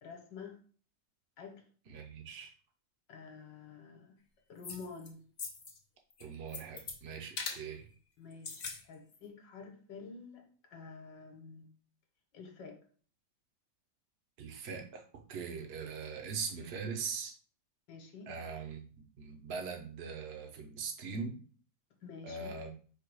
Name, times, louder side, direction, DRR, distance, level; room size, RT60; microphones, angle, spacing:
voice 1, 0.0-0.6 1.4-1.6 3.1-4.2 4.5-5.2 8.2-10.4 10.7-11.7 12.3-12.8 17.9-18.4 22.0-22.5, left 5 dB, 65° left, 4 dB, 1.5 m, -49 dB
voice 2, 1.9-2.5 6.2-7.8 14.4-15.0 15.3-17.3 18.3-18.9 19.2-21.4 22.2-22.7, right 5 dB, 60° right, 3 dB, 0.6 m, -41 dB
sound 1, 4.6-5.1 5.4-5.8 6.1-7.0 7.4-7.6 8.3-8.8 9.1-9.2, left 4 dB, 85° left, 0.5 m, -41 dB
4.6 x 2.3 x 4.7 m, 0.42 s
omnidirectional pair, 2.1 m